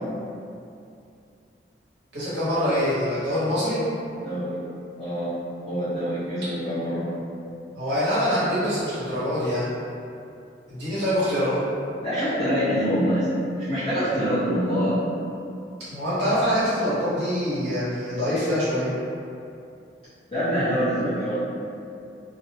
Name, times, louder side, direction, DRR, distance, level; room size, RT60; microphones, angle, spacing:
voice 1, 2.1-3.8 7.8-9.7 10.7-11.6 15.9-18.9, equal, 70° right, -11 dB, 0.9 m, -24 dB
voice 2, 4.1-4.6 5.0-5.3 5.6-7.1 12.0-15.0 20.3-21.4, equal, 35° left, -17 dB, 0.8 m, -25 dB
2.4 x 2.1 x 2.8 m, 2.5 s
head